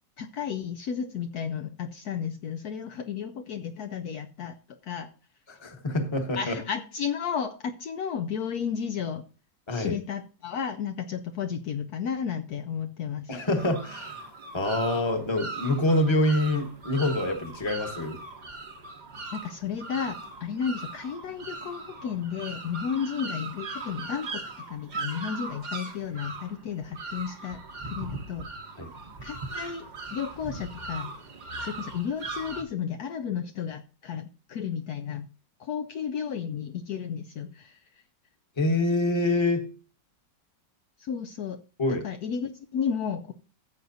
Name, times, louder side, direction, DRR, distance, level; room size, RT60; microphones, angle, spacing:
voice 1, 0.2-5.1 6.3-9.2 9.7-13.3 19.3-28.5 29.2-31.1 31.6-35.3 35.6-37.8 41.0-41.6 41.9-43.3, left 7 dB, 70° left, 6 dB, 1.1 m, -33 dB
voice 2, 5.5-6.6 9.7-9.9 13.3-14.2 14.5-18.2 28.8-28.9 38.6-39.7 41.8-42.0, left 1 dB, 20° left, 5 dB, 1.1 m, -26 dB
sound 1, 13.5-32.6, right 3 dB, 35° right, 0.9 m, -39 dB
15.0 x 7.8 x 2.7 m, 0.33 s
omnidirectional pair, 1.9 m